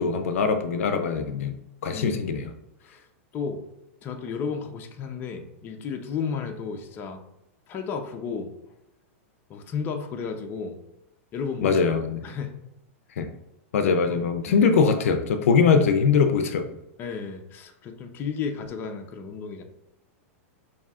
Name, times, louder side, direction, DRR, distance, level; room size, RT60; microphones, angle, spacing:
voice 1, 0.0-1.6 1.8-2.4 11.6-12.3 13.2-13.3 13.7-16.7, left 5 dB, 80° left, 8 dB, 0.5 m, -22 dB
voice 2, 1.9-2.2 2.8-3.1 3.3-3.6 4.0-7.2 7.7-8.5 9.5-10.8 11.3-11.8 12.2-12.6 13.8-14.7 17.0-19.6, left 6 dB, 30° left, 4 dB, 0.6 m, -33 dB
5.3 x 2.7 x 2.4 m, 0.89 s
hypercardioid pair, 140°, 7 cm